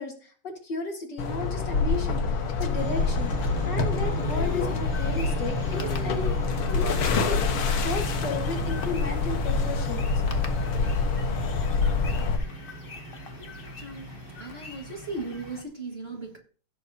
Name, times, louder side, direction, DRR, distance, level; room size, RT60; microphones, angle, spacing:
voice 1, 0.0-6.3 6.7-10.2, left 3 dB, 55° left, 2 dB, 2.4 m, -35 dB
sound 1, 1.2-12.4, left 4 dB, 80° left, 2.1 m, -26 dB
sound 2, 2.7-15.6, right 3 dB, 55° right, 5.8 m, -39 dB
sound 3, 4.2-15.6, left 4 dB, 40° left, 0.9 m, -41 dB
voice 2, 13.3-14.1 14.4-16.4, right 3 dB, 30° right, 0 dB, 2.0 m, -37 dB
16.5 x 7.3 x 2.8 m, 0.40 s
omnidirectional pair, 2.3 m